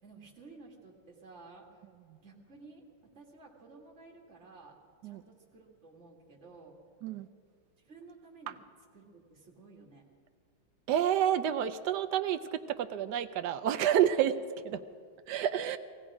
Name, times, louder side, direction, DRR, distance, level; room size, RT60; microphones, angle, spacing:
voice 1, 0.0-1.8 2.2-4.8 5.0-6.8 7.8-8.6 8.9-10.0, right 3 dB, 35° right, -1 dB, 2.3 m, -54 dB
voice 2, 10.9-14.4 14.6-14.8 15.3-15.8, right 10 dB, 75° right, 9 dB, 1.0 m, -29 dB
19.0 x 15.5 x 4.9 m, 2.1 s
omnidirectional pair, 2.2 m